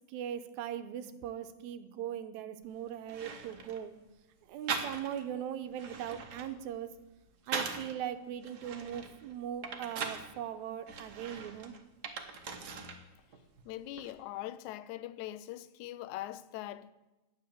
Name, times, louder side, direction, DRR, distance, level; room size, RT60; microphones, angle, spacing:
voice 1, 0.1-3.9 4.5-6.9 7.5-11.7, right 10 dB, 85° right, 2.1 m, -40 dB
sound 1, 2.6-2.7 3.1-3.8 4.7-5.3 5.7-7.9 8.4-10.3 10.9-13.0 13.3-14.1, right 5 dB, 60° right, 1.0 m, -40 dB
voice 2, 13.7-16.9, left 14 dB, 85° left, 2.0 m, -42 dB
9.5 x 7.1 x 9.1 m
omnidirectional pair, 3.3 m